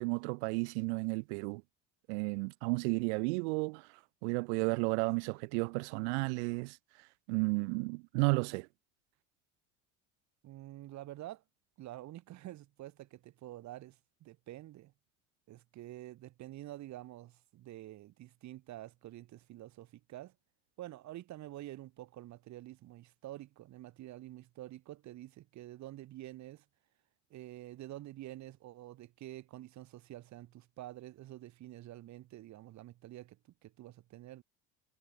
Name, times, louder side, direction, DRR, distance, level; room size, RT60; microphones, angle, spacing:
voice 1, 0.0-1.6 2.1-3.9 4.2-6.8 7.3-8.7, right 31 dB, 90° right, 1.3 m, -33 dB
voice 2, 10.4-11.4 11.8-14.9 15.5-20.3 20.8-26.6 27.3-34.4, right 15 dB, 55° right, 7.3 m, -48 dB
cardioid pair, 120°, 33 cm